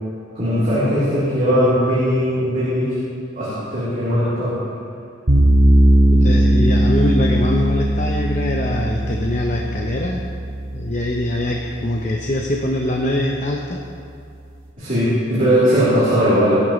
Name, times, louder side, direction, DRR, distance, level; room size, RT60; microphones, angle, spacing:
voice 1, 0.3-3.0 3.3-4.6 14.8-16.6, equal, 40° right, -12 dB, 3.6 m, -18 dB
sound 1, 5.3-12.4, right 1 dB, 75° right, 2.5 m, -18 dB
voice 2, 6.1-10.2 10.7-13.8, left 1 dB, 35° left, 0 dB, 0.8 m, -23 dB
18.5 x 11.0 x 3.2 m, 2.4 s
head